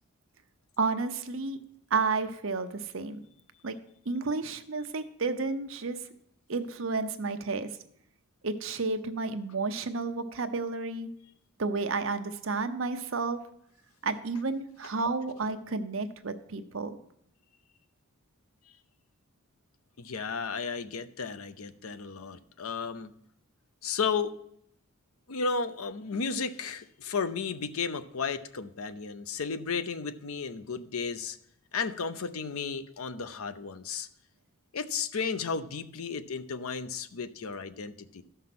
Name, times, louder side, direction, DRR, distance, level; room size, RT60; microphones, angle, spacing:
voice 1, 0.8-1.6 1.9-3.2 3.6-3.8 4.1-6.0 6.5-7.7 8.4-11.1 11.6-13.4 14.0-17.0, right 4 dB, 65° right, 8 dB, 0.8 m, -31 dB
voice 2, 20.0-23.1 23.8-24.4 25.3-31.4 31.7-34.1 34.7-38.2, left 5 dB, 85° left, 12 dB, 0.7 m, -33 dB
13.5 x 5.7 x 5.9 m, 0.72 s
head